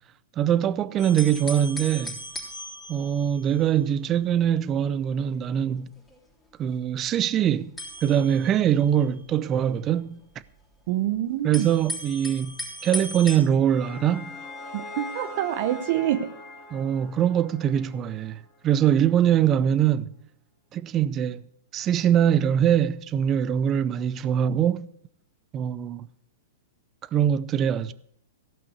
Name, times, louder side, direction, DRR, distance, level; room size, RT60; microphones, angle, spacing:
voice 1, 0.4-2.2 2.9-5.9 6.6-7.7 8.0-10.2 11.4-14.3 16.7-20.1 20.7-21.4 21.7-24.9 25.5-26.1 27.1-27.9, right 9 dB, 30° right, 0.6 m, -23 dB
sound 1, 1.0-3.9 4.3-4.5 5.1-6.2 7.8-9.7 10.4-10.5 11.5-13.4, left 1 dB, 10° left, 3.3 m, -38 dB
voice 2, 10.9-11.7 14.7-16.3, right 12 dB, 55° right, 0.8 m, -26 dB
sound 2, 13.3-18.5, left 2 dB, 25° left, 2.4 m, -41 dB
15.5 x 5.8 x 8.0 m
hypercardioid pair, 120°, 0 cm